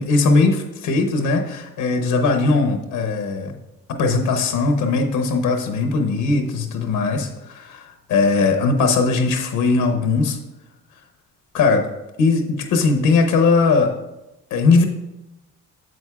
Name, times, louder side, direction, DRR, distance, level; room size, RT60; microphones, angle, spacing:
voice 1, 0.0-3.5 3.9-10.4 11.5-11.8 12.2-13.9 14.5-14.9, left 4 dB, 85° left, 5 dB, 0.8 m, -19 dB
7.8 x 7.5 x 2.3 m, 0.97 s
cardioid pair, 90°, 30 cm